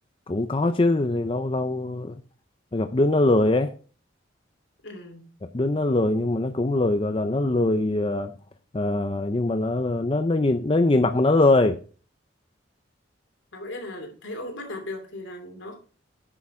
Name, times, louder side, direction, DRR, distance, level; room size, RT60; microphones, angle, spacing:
voice 1, 0.3-2.1 2.7-3.7 5.5-8.3 8.7-11.8, left 2 dB, 25° left, 0.5 m, -22 dB
voice 2, 4.8-5.3 13.5-15.8, left 1 dB, 75° left, 2.9 m, -37 dB
10.0 x 6.0 x 4.4 m
head